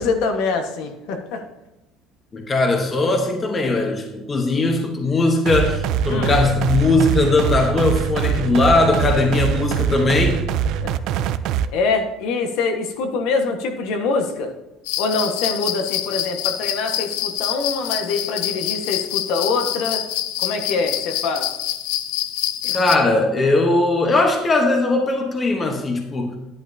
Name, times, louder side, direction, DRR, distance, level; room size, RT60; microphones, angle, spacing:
voice 1, 0.0-1.4 6.1-6.4 10.8-10.9 11.7-14.5 15.0-20.0 20.4-21.5 22.6-22.8, left 4 dB, 65° left, 5 dB, 1.4 m, -24 dB
voice 2, 2.3-10.4 22.7-26.4, left 2 dB, 20° left, 3 dB, 1.1 m, -19 dB
sound 1, 5.5-11.7, right 9 dB, 50° right, 0.4 m, -23 dB
sound 2, 14.9-23.0, left 13 dB, 90° left, 0.6 m, -26 dB
11.0 x 11.0 x 2.8 m, 1.0 s
cardioid pair, 180°, 0 cm